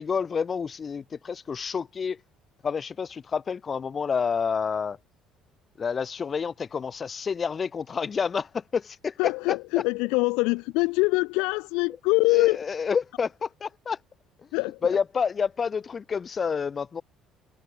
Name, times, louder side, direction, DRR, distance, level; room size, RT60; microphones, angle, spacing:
voice 1, 0.0-2.2 2.6-5.0 5.8-9.3 12.3-14.0 14.8-17.0, left 6 dB, 40° left, 2.6 m, -29 dB
voice 2, 9.2-12.6 14.5-14.8, left 27 dB, 75° left, 0.9 m, -24 dB
hypercardioid pair, 55°, 0 cm